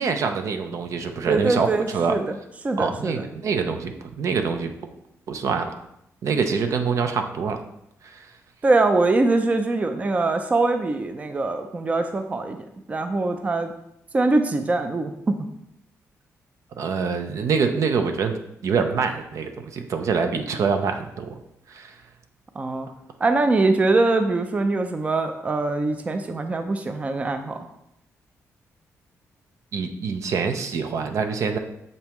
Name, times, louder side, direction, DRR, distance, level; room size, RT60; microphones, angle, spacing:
voice 1, 0.0-2.1 2.8-4.7 5.3-5.8 6.2-7.6 8.0-8.2 16.8-18.4 18.6-21.3 21.7-21.9 29.7-31.6, right 5 dB, 65° right, 6 dB, 0.7 m, -25 dB
voice 2, 1.3-2.4 2.6-3.3 8.6-12.6 12.9-13.7 14.1-15.5 22.6-22.9 23.2-27.7, right 3 dB, 25° right, 7 dB, 0.4 m, -23 dB
6.9 x 5.4 x 3.1 m, 0.80 s
cardioid pair, 125°, 6 cm